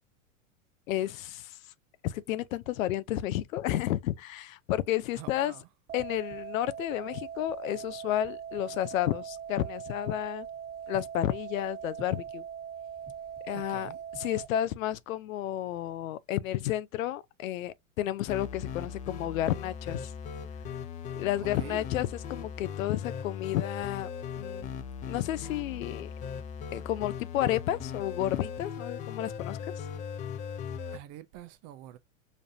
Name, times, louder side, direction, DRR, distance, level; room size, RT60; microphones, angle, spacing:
voice 1, 0.9-1.6 2.0-5.5 5.9-10.5 10.9-12.4 13.5-13.9 14.2-20.1 21.2-24.1 24.4-24.7 25.1-26.1 26.7-29.8, left 13 dB, 75° left, 0.6 m, -31 dB
voice 2, 5.2-5.7 13.5-14.0 21.4-21.9 30.9-32.0, right 13 dB, 40° right, 0.6 m, -46 dB
sound 1, 5.9-14.5, right 8 dB, 25° right, 1.7 m, -41 dB
sound 2, 18.3-31.0, left 7 dB, 20° left, 0.3 m, -39 dB
5.2 x 2.5 x 2.7 m
hypercardioid pair, 115°, 41 cm